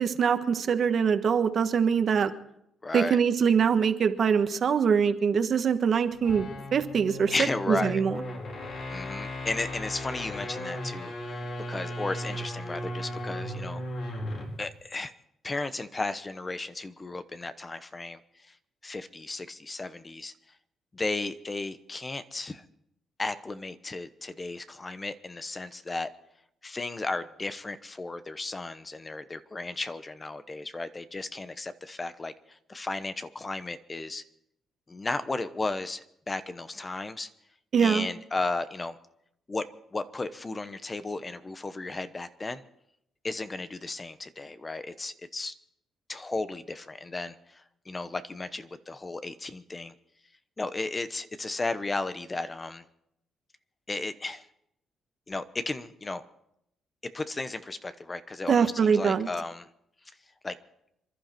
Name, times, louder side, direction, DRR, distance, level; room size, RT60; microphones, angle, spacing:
voice 1, 0.0-2.3 2.9-8.2 37.7-38.1 58.5-59.3, right 6 dB, 55° right, 8 dB, 1.3 m, -24 dB
voice 2, 2.8-3.2 7.3-8.0 8.9-11.4 11.7-13.8 14.6-15.1 15.4-18.2 18.8-20.3 20.9-22.6 23.2-26.1 26.6-34.2 34.9-37.3 37.8-39.0 39.5-39.7 39.9-42.6 43.2-45.5 46.1-49.9 50.6-52.8 53.9-54.4 55.3-56.2 57.1-59.7 60.4-60.6, left 3 dB, 25° left, 11 dB, 1.0 m, -34 dB
sound 1, 6.1-14.6, left 1 dB, 60° left, 4.8 m, -36 dB
27.0 x 12.0 x 4.5 m, 0.77 s
cardioid pair, 90°, 0 cm